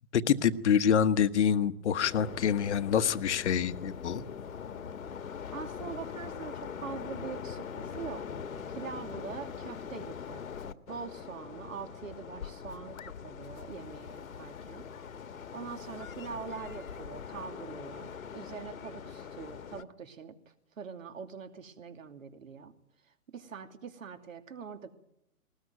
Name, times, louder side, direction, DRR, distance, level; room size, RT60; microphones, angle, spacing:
voice 1, 0.1-4.2, left 8 dB, 50° left, 1.2 m, -26 dB
sound 1, 2.0-19.8, left 7 dB, 65° left, 1.6 m, -42 dB
voice 2, 5.5-8.3 8.7-10.5 10.9-14.9 15.5-20.4 20.8-22.7 23.0-25.0, right 6 dB, 60° right, 2.9 m, -43 dB
20.5 x 20.0 x 9.3 m
hypercardioid pair, 145°, 44 cm